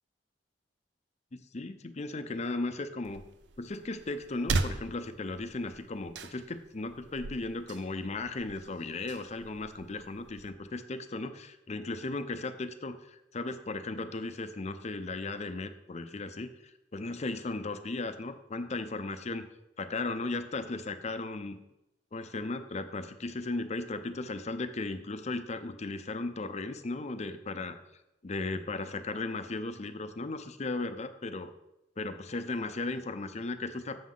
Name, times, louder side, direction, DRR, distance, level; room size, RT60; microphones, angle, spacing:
voice 1, 1.3-3.2 3.6-19.5 19.8-21.6 22.1-27.8 28.2-31.5 32.0-34.0, left 3 dB, 40° left, 10 dB, 0.6 m, -36 dB
sound 1, 3.0-10.5, right 3 dB, 70° right, 0.5 m, -39 dB
7.4 x 7.2 x 3.8 m, 0.90 s
head